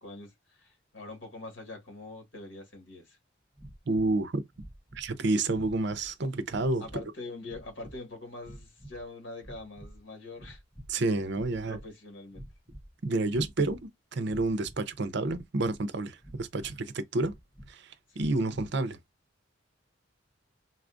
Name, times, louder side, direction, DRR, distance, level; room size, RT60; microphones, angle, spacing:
voice 1, 0.0-3.2 6.8-10.6 11.7-12.4 18.1-18.2 18.5-18.6, left 2 dB, 70° left, 1.9 m, -44 dB
sound 1, 3.6-4.2 4.5-5.1 5.5-6.1 6.5-7.1 7.4-8.0 8.4-9.1 9.4-10.0 10.3-11.0 11.3-11.9 12.3-12.9 13.3-13.9 14.3-14.8 15.2-15.9 16.2-16.8 17.2-17.7 18.2-18.7, equal, ahead, 0.6 m, -49 dB
voice 2, 3.9-4.3 4.9-7.0 10.9-11.8 13.0-13.8 14.1-17.3 17.7-19.0, right 2 dB, 60° right, 0.6 m, -29 dB
4.0 x 2.4 x 2.5 m
head